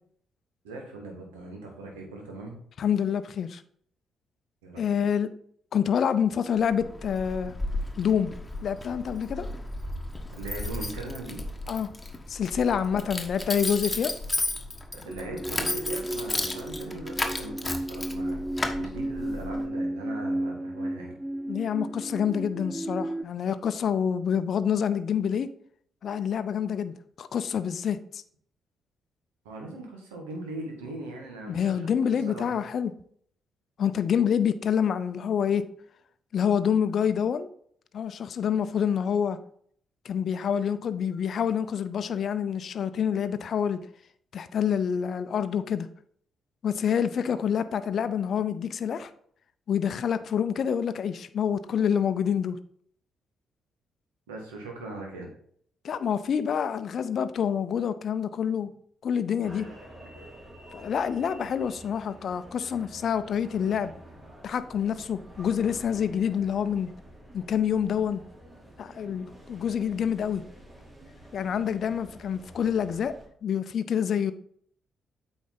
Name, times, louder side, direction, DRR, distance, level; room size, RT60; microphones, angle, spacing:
voice 1, 0.6-2.6 4.6-4.8 10.3-11.4 12.9-13.1 14.9-21.1 29.4-31.9 32.3-32.6 54.3-55.3, right 2 dB, 80° right, 1 dB, 1.7 m, -40 dB
voice 2, 2.8-3.6 4.8-5.3 5.7-7.5 8.0-8.3 8.6-9.5 11.7-11.9 12.3-14.1 21.5-25.5 26.0-28.2 31.5-32.9 33.8-35.7 36.3-37.5 37.9-39.4 40.0-43.8 44.3-45.9 46.6-49.1 49.7-52.6 55.8-58.7 59.0-59.7 60.7-63.9 64.4-66.9 67.3-68.2 68.8-70.4 71.3-73.1 73.4-74.3, left 8 dB, 55° left, 12 dB, 0.5 m, -27 dB
Keys jangling, 6.6-19.7, left 2 dB, 20° left, 1.3 m, -34 dB
sound 1, 15.1-23.2, right 1 dB, 15° right, 0.3 m, -33 dB
sound 2, 59.4-73.3, right 1 dB, 35° right, 3.3 m, -49 dB
8.4 x 5.1 x 4.0 m, 0.62 s
hypercardioid pair, 40°, 0 cm